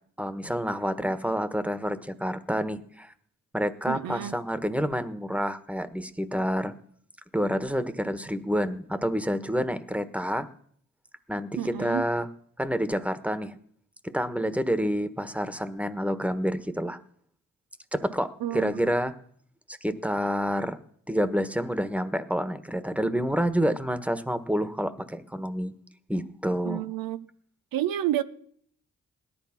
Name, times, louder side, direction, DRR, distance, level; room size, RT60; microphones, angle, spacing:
voice 1, 0.2-3.1 3.5-6.7 7.3-10.5 11.3-12.3 12.6-13.6 14.1-17.0 17.9-19.1 19.7-20.8 21.1-25.7 26.1-26.8, equal, 5° right, 1.3 m, -28 dB
voice 2, 3.9-4.4 11.6-12.0 18.4-18.9 26.7-27.3 27.7-28.2, right 12 dB, 90° right, 0.7 m, -30 dB
17.5 x 11.5 x 5.9 m
supercardioid pair, 45°, 34 cm